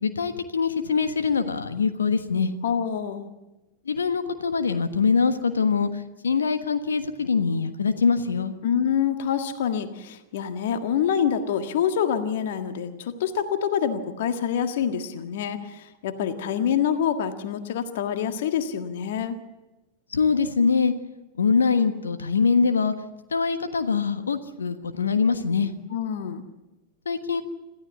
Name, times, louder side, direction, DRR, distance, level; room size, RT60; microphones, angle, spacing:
voice 1, 0.0-2.5 3.8-8.5 20.1-20.9 21.3-22.9 23.3-25.7 27.0-27.4, left 5 dB, 70° left, 9 dB, 1.3 m, -23 dB
voice 2, 2.6-3.3 8.6-19.4 25.9-26.4, left 8 dB, 55° left, 8 dB, 1.7 m, -26 dB
26.5 x 15.0 x 8.1 m, 1.1 s
figure-of-eight pair, 90°, 0 cm